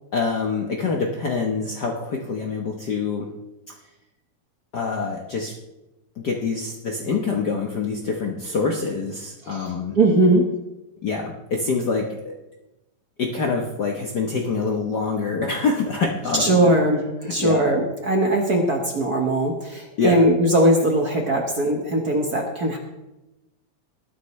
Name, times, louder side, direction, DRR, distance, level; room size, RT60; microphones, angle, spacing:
voice 1, 0.1-3.3 4.7-5.5 6.2-10.0 11.0-12.3 13.2-16.7 17.2-17.6 20.0-20.2, left 4 dB, 90° left, 0 dB, 0.9 m, -25 dB
voice 2, 9.4-10.4 16.4-22.8, right 1 dB, 50° right, 1 dB, 1.1 m, -20 dB
20.0 x 10.5 x 3.2 m, 0.98 s
omnidirectional pair, 3.6 m